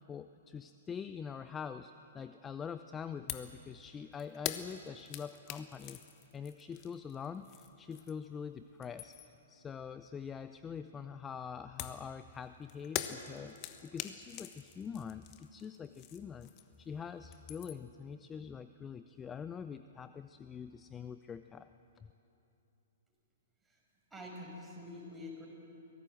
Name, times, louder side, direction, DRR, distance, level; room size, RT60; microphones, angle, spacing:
voice 1, 0.1-6.0 6.3-9.2 9.5-16.5 16.8-21.7 22.0-22.1, left 7 dB, 15° left, 11 dB, 0.5 m, -44 dB
sound 1, 3.3-3.6 3.9-8.3 8.7-9.4 11.8-16.9 17.2-17.9, left 12 dB, 35° left, 1.2 m, -44 dB
voice 2, 24.1-25.5, left 1 dB, 10° right, -3 dB, 5.7 m, -46 dB
23.5 x 17.5 x 7.7 m, 3.0 s
figure-of-eight pair, 115°, 0 cm